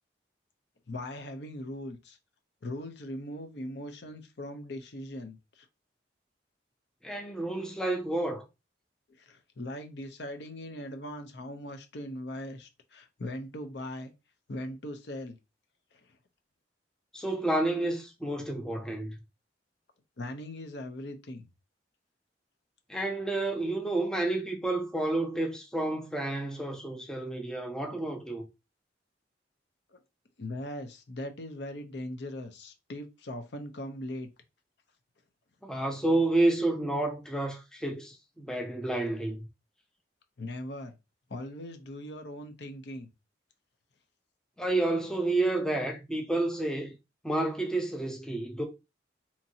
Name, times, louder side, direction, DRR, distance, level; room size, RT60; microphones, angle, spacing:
voice 1, 0.9-2.2 2.6-5.7 9.1-14.1 14.5-15.4 15.9-16.2 20.2-21.5 29.9-30.0 30.4-34.3 40.4-41.0 41.3-43.1, left 1 dB, 70° left, 0.6 m, -40 dB
voice 2, 7.0-8.4 17.1-19.2 22.9-28.4 35.6-39.5 44.6-47.0 47.2-48.6, right 2 dB, 5° left, 0.4 m, -30 dB
2.9 x 2.6 x 2.7 m
head